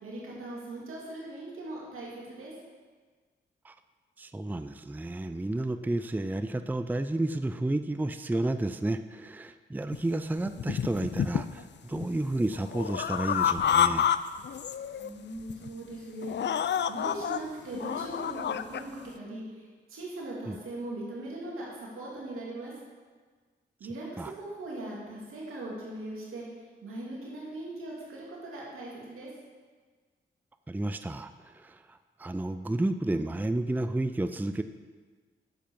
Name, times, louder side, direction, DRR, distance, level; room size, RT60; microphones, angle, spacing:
voice 1, 0.0-2.5 15.0-16.6 16.9-22.7 23.8-29.3, right 1 dB, 80° right, -4 dB, 2.8 m, -40 dB
voice 2, 4.2-14.1 20.5-20.6 24.2-24.3 30.7-34.6, right 2 dB, 10° right, 10 dB, 0.5 m, -31 dB
sound 1, 9.9-10.0 10.5-11.6 11.9-14.2 14.4-15.1 15.5-15.7 16.2-17.4 17.7-18.8, left 9 dB, 55° left, 0.5 m, -29 dB
9.0 x 7.4 x 5.4 m, 1.5 s
supercardioid pair, 45°, 21 cm